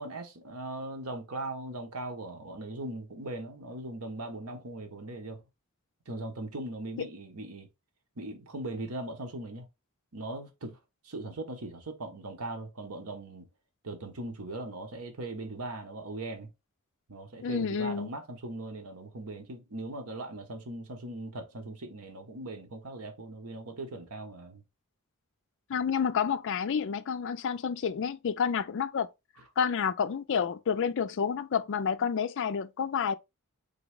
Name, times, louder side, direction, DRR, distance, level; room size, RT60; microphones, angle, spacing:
voice 1, 0.0-5.4 6.1-7.7 8.2-9.7 10.1-10.8 11.0-13.5 13.8-16.5 17.1-24.6, right 2 dB, 75° right, 1.1 m, -39 dB
voice 2, 17.4-18.1 25.7-29.1 29.6-33.2, left 6 dB, 55° left, 0.4 m, -29 dB
3.9 x 3.5 x 3.4 m
head